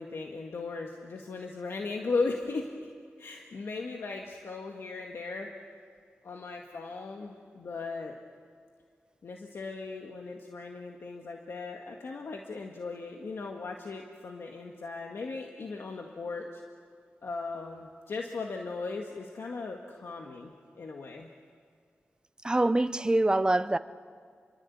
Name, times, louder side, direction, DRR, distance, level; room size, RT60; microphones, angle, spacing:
voice 1, 0.0-2.8 3.2-5.5 6.2-8.2 9.2-16.6 17.2-21.3, left 3 dB, 80° left, 1.8 m, -37 dB
voice 2, 22.4-23.8, right 2 dB, 20° right, 0.9 m, -24 dB
29.0 x 23.0 x 8.4 m
wide cardioid pair, 75°, 4 cm